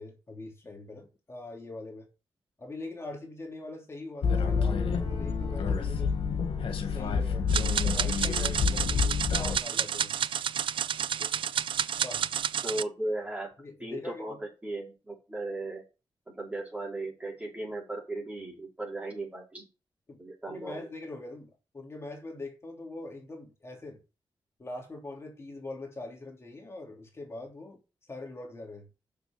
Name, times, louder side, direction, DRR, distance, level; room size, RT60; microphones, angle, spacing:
voice 1, 0.0-2.1 2.6-6.1 6.8-7.5 7.8-9.1 9.4-10.1 11.2-11.5 12.0-12.3 13.6-14.4 20.1-20.2 20.5-24.0 24.6-27.8 28.1-28.9, left 2 dB, 30° left, 3.1 m, -42 dB
sound 1, 4.2-9.6, left 5 dB, 80° left, 1.8 m, -28 dB
sound 2, 7.5-12.8, right 9 dB, 70° right, 0.4 m, -30 dB
voice 2, 12.6-13.5 13.8-15.8 16.3-19.7 20.2-20.9, right 2 dB, 15° right, 5.0 m, -37 dB
6.8 x 6.7 x 7.0 m
wide cardioid pair, 110°, 9 cm